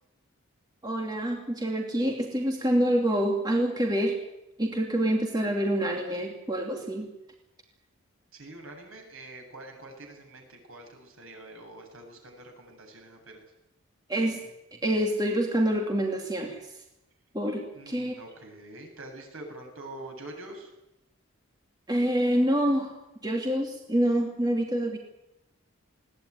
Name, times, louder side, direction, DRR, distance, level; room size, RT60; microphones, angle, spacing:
voice 1, 0.8-4.2 4.6-7.1 14.1-14.4 14.7-16.7 17.3-18.2 21.9-22.9 23.2-25.0, right 1 dB, 20° right, 1 dB, 2.6 m, -26 dB
voice 2, 8.3-13.4 17.7-20.7, right 2 dB, 70° right, 3 dB, 7.7 m, -45 dB
20.5 x 18.5 x 9.7 m, 0.90 s
head